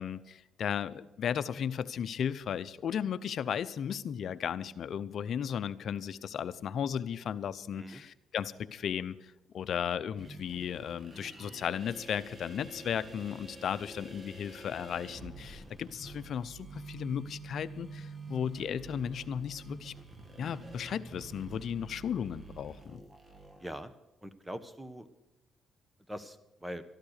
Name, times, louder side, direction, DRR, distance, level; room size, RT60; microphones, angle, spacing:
voice 1, 0.0-19.9 20.4-23.0, left 8 dB, 60° left, 13 dB, 0.6 m, -35 dB
sound 1, 10.2-23.7, right 3 dB, 25° right, 1.7 m, -48 dB
voice 2, 23.6-23.9 24.2-25.1 26.1-26.8, equal, 5° right, 12 dB, 1.1 m, -42 dB
13.5 x 12.0 x 6.6 m, 0.94 s
cardioid pair, 90°, 0 cm